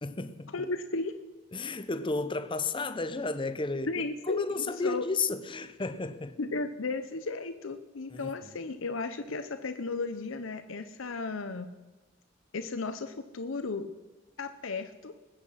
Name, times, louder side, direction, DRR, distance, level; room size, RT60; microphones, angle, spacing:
voice 1, 0.0-0.7 1.5-3.9 4.3-6.4 8.1-8.6, left 3 dB, 25° left, 0.8 m, -33 dB
voice 2, 0.5-1.1 3.9-5.0 6.4-11.7 12.5-13.9 14.4-15.1, left 3 dB, 85° left, 0.8 m, -34 dB
20.5 x 8.2 x 5.7 m
head